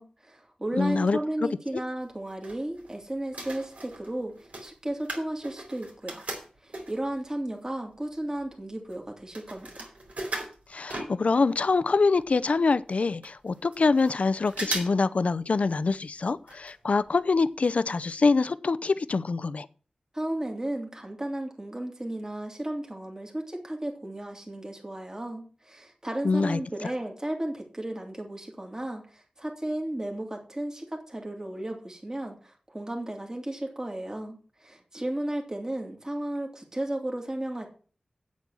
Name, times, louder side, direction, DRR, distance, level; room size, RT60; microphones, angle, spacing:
voice 1, 0.0-6.2 6.6-9.9 20.1-37.7, right 1 dB, 25° right, 2 dB, 2.5 m, -34 dB
voice 2, 0.7-1.2 10.7-19.7 26.2-26.9, left 4 dB, 70° left, 16 dB, 0.6 m, -25 dB
sound 1, 2.0-3.0 3.2-7.1 7.7-7.8 8.0-11.6 11.9-12.0 12.2-12.3 12.9-13.0 13.2-14.1 14.5-15.1 15.4-15.5 16.4-16.7 17.1-17.2 17.6-17.7 18.1-18.2, right 2 dB, 75° right, 3.9 m, -38 dB
8.5 x 8.3 x 6.2 m, 0.39 s
wide cardioid pair, 65°, 2 cm